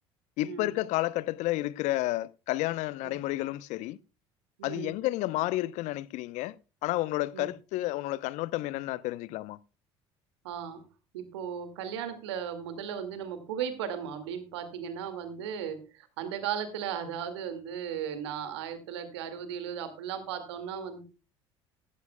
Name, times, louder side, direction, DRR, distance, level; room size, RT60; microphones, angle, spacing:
voice 1, 0.4-4.0 4.6-6.6 6.8-9.6, left 17 dB, 60° left, 0.7 m, -31 dB
voice 2, 4.6-5.0 7.3-7.5 10.4-10.8 11.1-21.0, right 8 dB, 75° right, 2.1 m, -36 dB
15.0 x 14.5 x 2.2 m
hypercardioid pair, 60°, 14 cm